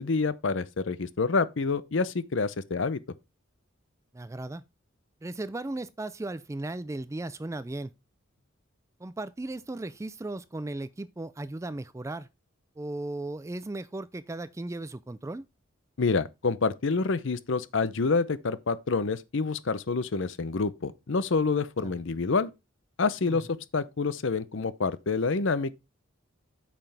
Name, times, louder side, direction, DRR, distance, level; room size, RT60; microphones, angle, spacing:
voice 1, 0.0-3.0 16.0-22.5 23.0-25.7, left 4 dB, 65° left, 0.6 m, -27 dB
voice 2, 4.1-4.6 5.2-7.9 9.0-12.3 12.8-15.5 21.8-21.9 23.3-23.4, right 2 dB, 15° right, 0.3 m, -36 dB
8.6 x 5.9 x 3.4 m
head